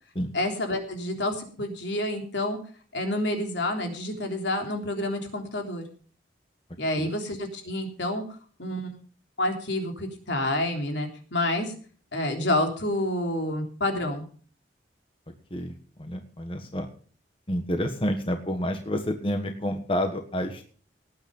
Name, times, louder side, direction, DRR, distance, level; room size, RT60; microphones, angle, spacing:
voice 1, 0.3-2.6 2.9-5.8 6.8-9.0 9.4-11.7 12.1-14.3, left 1 dB, 70° left, 3 dB, 3.5 m, -28 dB
voice 2, 15.5-16.9 17.5-20.7, equal, 30° left, 5 dB, 1.4 m, -29 dB
18.5 x 8.7 x 5.4 m, 0.43 s
head